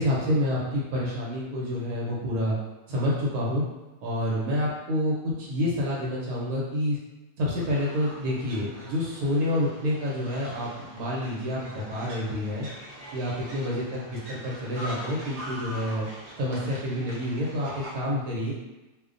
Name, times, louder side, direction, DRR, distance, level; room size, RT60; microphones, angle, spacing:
voice 1, 0.0-2.6 2.9-3.7 4.0-7.0 7.4-12.7 13.1-16.1 16.4-18.5, left 1 dB, 80° right, -5 dB, 1.1 m, -28 dB
sound 1, 7.5-18.0, equal, 50° right, 0.8 m, -43 dB
2.5 x 2.1 x 2.4 m, 1.1 s
omnidirectional pair, 1.5 m